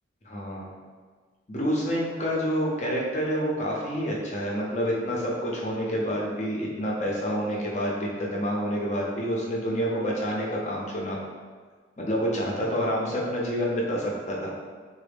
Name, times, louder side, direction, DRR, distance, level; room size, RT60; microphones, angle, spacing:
voice 1, 0.2-0.7 1.5-11.2 12.0-14.5, equal, 40° left, -3 dB, 0.6 m, -28 dB
3.9 x 2.0 x 3.4 m, 1.5 s
head